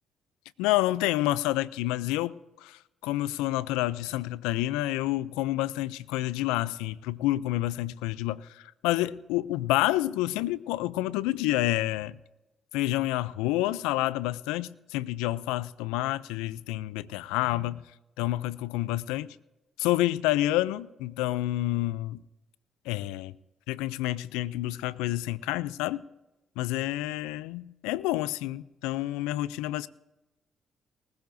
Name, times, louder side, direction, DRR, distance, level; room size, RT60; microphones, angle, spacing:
voice 1, 0.6-12.2 12.7-17.8 18.2-19.3 19.8-22.2 22.9-23.3 23.7-26.0 26.6-29.9, left 16 dB, 85° left, 0.3 m, -29 dB
19.5 x 15.5 x 2.6 m
supercardioid pair, 55°, 0 cm